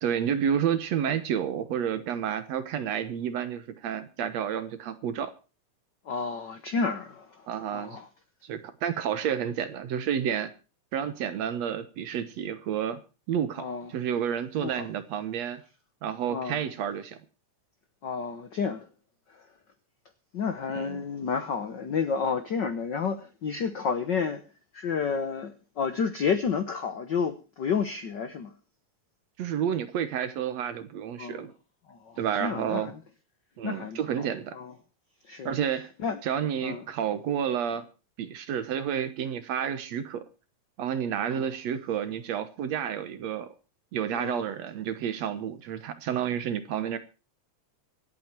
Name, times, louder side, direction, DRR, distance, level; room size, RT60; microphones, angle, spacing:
voice 1, 0.0-5.3 7.5-8.0 8.4-10.5 10.9-13.0 13.3-15.6 16.0-17.2 20.7-21.0 29.4-31.5 32.2-32.9 33.6-34.6 35.4-35.9 36.2-37.9 38.2-40.2 40.8-43.5 43.9-47.0, right 8 dB, 65° right, 2.2 m, -30 dB
voice 2, 6.0-8.1 13.6-13.9 14.6-14.9 16.3-16.6 18.0-18.9 19.3-19.4 20.3-24.4 24.7-28.5 31.2-31.5 31.9-32.9 33.6-34.3 34.5-34.7 35.2-35.5 36.0-36.2 36.6-36.8 41.3-41.5 44.1-44.5, left 5 dB, 85° left, 0.9 m, -31 dB
25.5 x 8.8 x 4.5 m
omnidirectional pair, 3.7 m